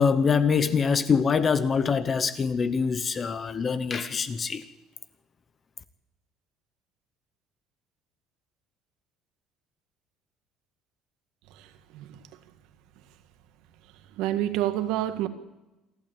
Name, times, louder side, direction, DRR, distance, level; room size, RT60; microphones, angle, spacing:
voice 1, 0.0-4.6, left 6 dB, 25° left, 13 dB, 0.9 m, -24 dB
voice 2, 14.2-15.3, right 13 dB, 75° right, 9 dB, 1.8 m, -27 dB
27.5 x 12.0 x 8.9 m, 1.0 s
cardioid pair, 170°, 0 cm